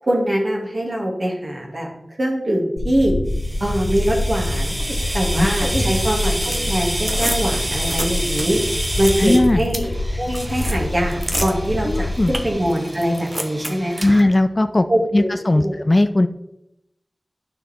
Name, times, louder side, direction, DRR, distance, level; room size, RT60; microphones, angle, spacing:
voice 1, 0.0-1.9 2.2-3.1 3.6-4.8 5.1-6.4 6.7-8.6 9.0-14.2 14.9-15.7, right 1 dB, 50° right, -2 dB, 2.3 m, -23 dB
sound 1, 2.8-12.5, left 1 dB, 70° left, 1.3 m, -26 dB
sound 2, 3.3-14.2, right 1 dB, 30° right, 1.1 m, -28 dB
voice 2, 9.2-9.6 11.9-12.3 14.0-14.9 15.1-16.3, left 1 dB, 35° left, 10 dB, 0.4 m, -17 dB
11.0 x 5.7 x 3.6 m, 0.84 s
wide cardioid pair, 70°, 0 cm